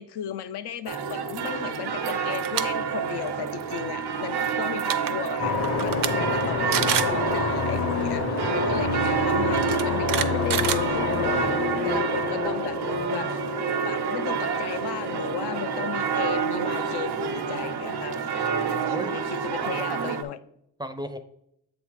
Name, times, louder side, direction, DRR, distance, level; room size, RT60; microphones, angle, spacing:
voice 1, 0.0-5.5 5.8-8.2 8.5-11.5 11.8-13.4 13.8-18.2 18.7-20.4, left 10 dB, 85° left, 11 dB, 0.6 m, -35 dB
sound 1, 0.9-20.2, right 6 dB, 90° right, 0.9 m, -29 dB
sound 2, 2.3-2.6 3.0-3.3 4.5-4.6 4.8-5.1 5.6-6.1 6.4-6.5 6.7-7.2 8.4-8.5 9.5-11.4, right 9 dB, 60° right, 0.6 m, -27 dB
sound 3, 5.4-16.8, left 4 dB, 40° left, 0.6 m, -29 dB
voice 2, 8.0-8.8 18.4-19.1 19.6-19.9 20.8-21.2, right 1 dB, 10° right, 7 dB, 0.4 m, -38 dB
7.9 x 3.6 x 4.7 m, 0.76 s
wide cardioid pair, 165°, 38 cm